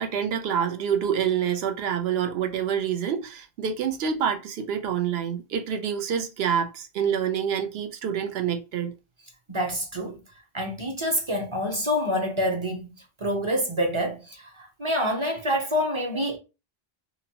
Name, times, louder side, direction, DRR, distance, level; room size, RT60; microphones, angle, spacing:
voice 1, 0.0-8.9, right 8 dB, 80° right, 0.8 m, -27 dB
voice 2, 9.5-10.2 10.5-12.9 13.2-16.4, equal, 35° right, 0.6 m, -27 dB
2.9 x 2.5 x 2.8 m
omnidirectional pair, 1.0 m